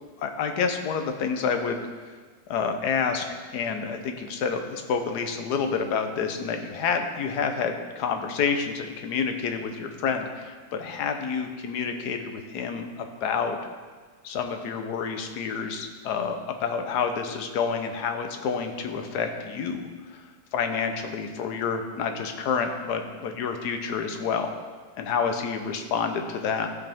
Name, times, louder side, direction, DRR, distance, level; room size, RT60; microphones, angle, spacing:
voice 1, 0.2-1.8 2.5-3.2 3.5-12.9 13.2-13.6 14.2-20.2 20.5-24.6 25.0-26.7, left 6 dB, 70° left, 6 dB, 1.3 m, -28 dB
14.0 x 5.8 x 3.5 m, 1.5 s
omnidirectional pair, 1.9 m